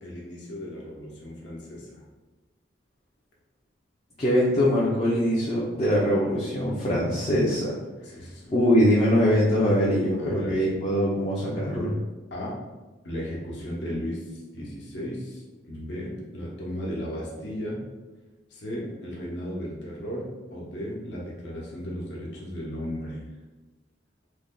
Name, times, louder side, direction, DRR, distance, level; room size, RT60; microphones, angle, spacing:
voice 1, 0.0-2.0 4.4-4.6 8.0-8.5 10.2-10.5 12.3-12.5 13.0-17.8 18.5-20.3 20.5-23.2, equal, 65° left, -4 dB, 0.9 m, -35 dB
voice 2, 4.2-7.8 8.5-11.9, equal, 30° left, -6 dB, 0.5 m, -22 dB
3.3 x 2.2 x 3.6 m, 1.2 s
head